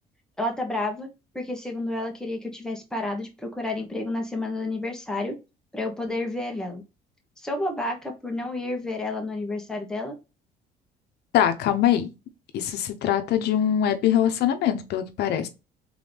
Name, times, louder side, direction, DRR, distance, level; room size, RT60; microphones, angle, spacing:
voice 1, 0.4-1.1 1.3-5.3 5.7-6.8 7.4-10.1, left 2 dB, 5° left, 1.3 m, -30 dB
voice 2, 11.3-12.1 12.5-15.5, left 10 dB, 75° left, 0.8 m, -23 dB
3.9 x 3.7 x 3.4 m
cardioid pair, 110°, 17 cm